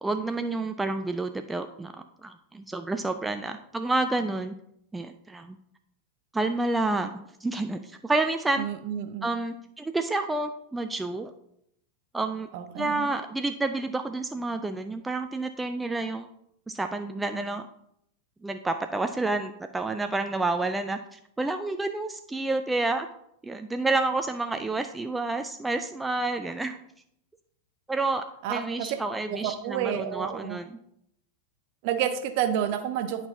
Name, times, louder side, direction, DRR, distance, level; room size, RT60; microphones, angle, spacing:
voice 1, 0.0-4.5 4.9-5.6 6.3-8.7 9.2-11.3 12.1-12.5 12.8-16.3 16.7-17.7 18.4-23.1 23.4-26.8 27.9-30.7, right 2 dB, 10° right, 7 dB, 0.3 m, -29 dB
voice 2, 8.6-9.3 12.5-13.2 28.4-29.0 29.3-30.6 31.8-33.3, right 9 dB, 45° right, 8 dB, 0.7 m, -30 dB
10.5 x 4.6 x 2.7 m, 0.74 s
figure-of-eight pair, 90°, 0 cm